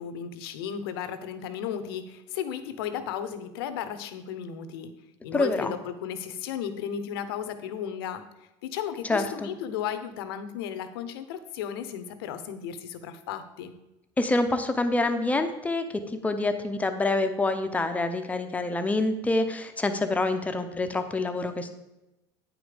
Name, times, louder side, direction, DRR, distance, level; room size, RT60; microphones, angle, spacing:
voice 1, 0.0-4.9 5.2-8.2 8.6-13.7, left 8 dB, 90° left, 11 dB, 0.8 m, -34 dB
voice 2, 5.3-5.7 9.1-9.5 14.2-15.9 16.2-21.7, left 2 dB, 10° left, 7 dB, 0.7 m, -26 dB
9.2 x 5.1 x 5.0 m, 0.97 s
supercardioid pair, 125°, 12 cm